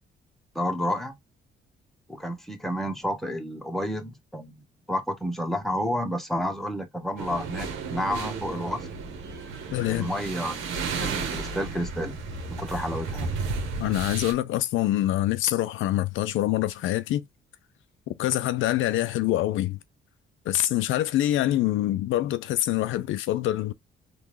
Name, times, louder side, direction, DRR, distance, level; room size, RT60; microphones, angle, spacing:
voice 1, 0.5-1.2 2.1-4.5 4.9-8.9 9.9-10.6 11.0-12.2 12.6-13.4, equal, ahead, 1.0 m, -30 dB
sound 1, 7.2-14.3, right 4 dB, 85° right, 1.1 m, -33 dB
voice 2, 9.7-10.1 13.8-17.2 18.1-19.8 20.5-23.7, left 14 dB, 80° left, 0.5 m, -25 dB
3.7 x 2.5 x 3.1 m
cardioid pair, 90°, 20 cm